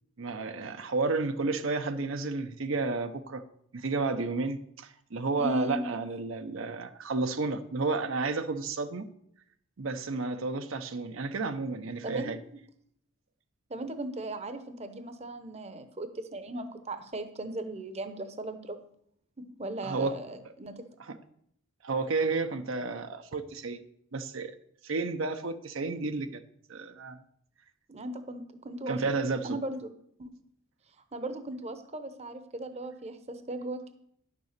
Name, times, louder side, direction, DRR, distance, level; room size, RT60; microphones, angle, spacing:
voice 1, 0.2-3.4 3.7-9.0 9.8-12.4 19.8-20.1 21.0-21.2 21.8-23.8 24.1-24.5 24.8-26.4 26.7-27.2 28.9-29.5, right 3 dB, 70° right, 8 dB, 0.8 m, -31 dB
voice 2, 5.4-5.8 12.0-12.3 13.7-18.8 19.4-20.8 27.9-29.0 29.4-29.8 30.2-30.3 31.1-33.9, right 1 dB, 30° right, 9 dB, 0.8 m, -37 dB
10.5 x 6.8 x 6.6 m, 0.69 s
head